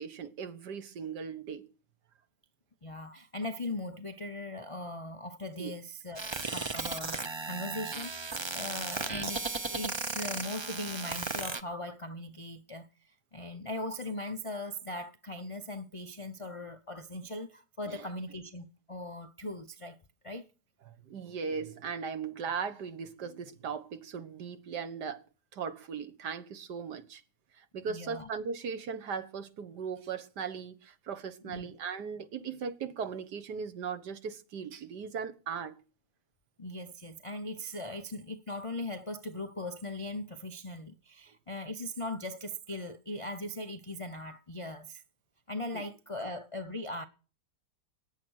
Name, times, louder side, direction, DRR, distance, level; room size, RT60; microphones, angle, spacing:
voice 1, 0.0-1.7 5.6-5.7 17.9-18.1 20.9-25.2 25.5-27.2 27.6-35.8, right 6 dB, 80° right, 1.8 m, -38 dB
voice 2, 2.8-20.0 20.2-20.5 27.8-28.3 31.4-31.7 36.6-45.0 45.5-47.0, left 1 dB, 60° left, 0.3 m, -39 dB
sound 1, 6.1-11.6, right 3 dB, 45° right, 0.3 m, -35 dB
20.0 x 9.0 x 6.3 m
omnidirectional pair, 1.8 m